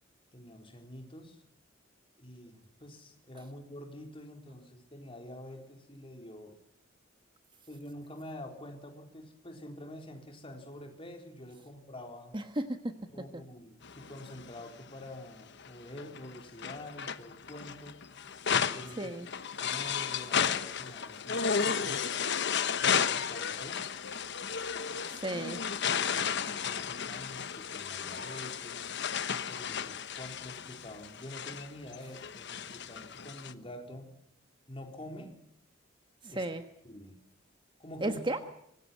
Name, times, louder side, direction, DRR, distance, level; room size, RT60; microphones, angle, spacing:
voice 1, 0.3-1.4 2.2-6.6 7.7-12.4 13.1-18.1 18.7-19.2 19.6-22.1 22.8-23.9 25.9-34.2 34.7-35.4 36.3-36.5 36.8-37.2 37.8-38.3, left 1 dB, 30° left, 4 dB, 4.0 m, -47 dB
voice 2, 12.3-12.9 13.3-13.4 19.0-19.3 25.1-25.6 36.2-36.6 38.0-38.4, right 1 dB, 25° right, 8 dB, 1.3 m, -34 dB
sound 1, 13.8-15.0 15.6-33.5, left 7 dB, 60° left, 1.1 m, -33 dB
25.0 x 20.0 x 5.7 m, 0.77 s
head